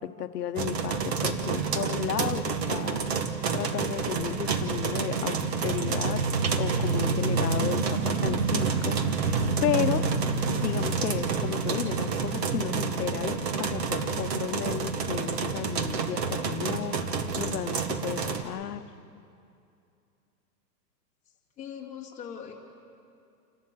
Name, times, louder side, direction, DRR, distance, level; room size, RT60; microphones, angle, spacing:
voice 1, 0.0-3.1 3.5-6.3 6.6-10.1 10.5-17.1 17.4-18.8, left 11 dB, 65° left, 11 dB, 1.0 m, -33 dB
sound 1, 0.6-18.4, right 5 dB, 40° right, 1.2 m, -28 dB
sound 2, 7.3-12.6, right 4 dB, 65° right, 1.9 m, -44 dB
voice 2, 21.6-22.5, left 8 dB, 15° left, -4 dB, 2.1 m, -40 dB
29.0 x 12.5 x 7.5 m, 2.6 s
hypercardioid pair, 175°, 50 cm